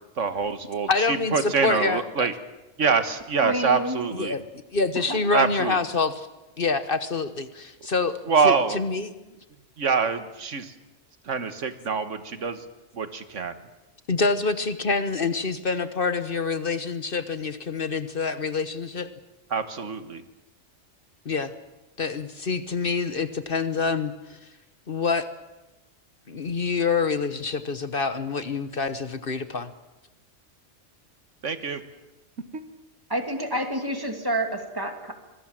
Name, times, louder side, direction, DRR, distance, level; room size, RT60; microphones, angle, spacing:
voice 1, 0.2-0.9 1.3-2.3 2.8-4.3 5.3-5.8 8.3-8.8 9.8-10.7 11.3-12.6 13.0-13.5 19.5-20.2 31.4-31.8, right 5 dB, 80° right, 10 dB, 1.8 m, -25 dB
voice 2, 0.9-2.3 4.1-4.4 4.7-6.3 6.6-8.2 8.4-9.1 14.1-19.1 21.2-21.5 22.0-24.4 24.9-25.3 26.3-29.7, left 4 dB, 50° left, 12 dB, 1.2 m, -26 dB
voice 3, 3.4-4.1 5.1-5.2 33.1-34.5 34.8-35.1, right 1 dB, 20° right, 5 dB, 2.7 m, -28 dB
26.0 x 20.5 x 7.5 m, 1.1 s
omnidirectional pair, 1.3 m